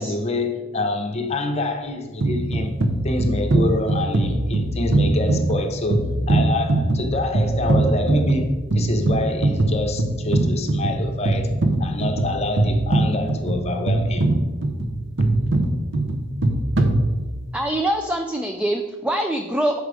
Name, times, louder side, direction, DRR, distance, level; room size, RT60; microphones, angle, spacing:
voice 1, 0.0-2.8 3.0-11.5 11.8-14.3, left 2 dB, 30° left, 0.8 m, -26 dB
sound 1, 2.2-17.6, right 2 dB, 65° right, 0.7 m, -22 dB
voice 2, 17.5-19.8, right 1 dB, 5° right, 0.3 m, -24 dB
6.5 x 5.0 x 4.8 m
head